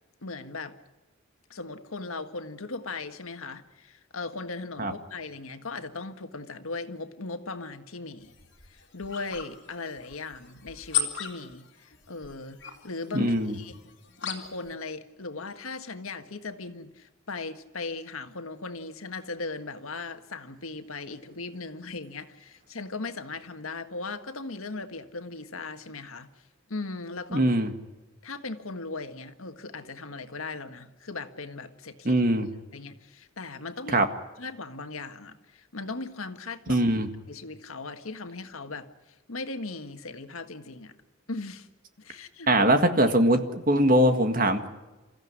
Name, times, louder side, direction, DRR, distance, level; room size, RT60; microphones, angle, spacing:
voice 1, 0.2-0.8 1.5-8.3 8.7-13.8 14.2-26.3 26.7-27.5 28.2-32.2 32.7-34.0 34.4-36.9 37.3-38.9 39.3-40.9 41.3-41.7 42.0-42.7, left 3 dB, 85° left, 8 dB, 1.7 m, -38 dB
sound 1, 8.2-14.7, left 8 dB, 55° left, 3.5 m, -37 dB
voice 2, 13.1-13.5 27.3-27.7 32.1-32.5 33.9-34.1 36.7-37.1 42.5-44.7, right 1 dB, 40° right, 7 dB, 1.8 m, -22 dB
28.0 x 14.5 x 9.7 m, 1.1 s
head